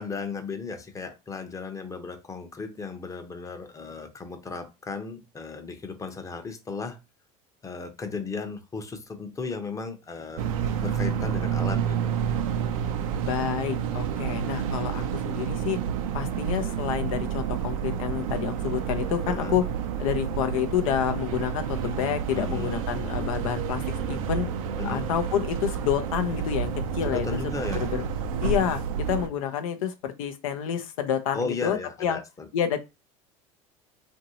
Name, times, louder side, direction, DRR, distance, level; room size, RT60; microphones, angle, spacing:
voice 1, 0.0-7.0 7.6-10.4 10.8-12.1 19.3-19.6 22.3-22.8 24.8-25.1 27.0-27.8 31.3-32.2, left 4 dB, 20° left, 0.7 m, -35 dB
sound 1, 10.4-29.3, right 7 dB, 80° right, 0.5 m, -29 dB
voice 2, 13.3-15.8 16.1-19.6 20.0-24.5 24.8-27.4 27.7-28.0 28.4-32.2 32.5-32.8, left 9 dB, 80° left, 0.5 m, -29 dB
2.9 x 2.6 x 2.8 m
hypercardioid pair, 85°, 17 cm